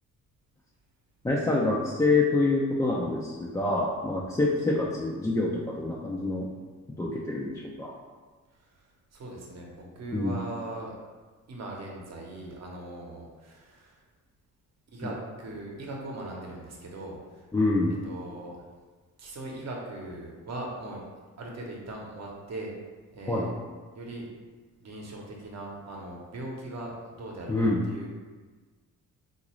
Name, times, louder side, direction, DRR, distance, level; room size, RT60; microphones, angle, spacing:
voice 1, 1.2-6.5 7.0-7.9 10.1-10.4 15.0-15.1 17.5-18.0 23.3-23.5 27.5-27.8, left 2 dB, 10° left, -5 dB, 0.4 m, -26 dB
voice 2, 9.1-11.0 11.5-14.0 14.9-17.4 18.0-18.6 19.2-21.0 21.4-22.7 23.1-23.5 23.9-24.3 24.8-28.1, right 2 dB, 50° right, -1 dB, 0.9 m, -39 dB
3.7 x 2.5 x 3.0 m, 1.4 s
cardioid pair, 85°, 33 cm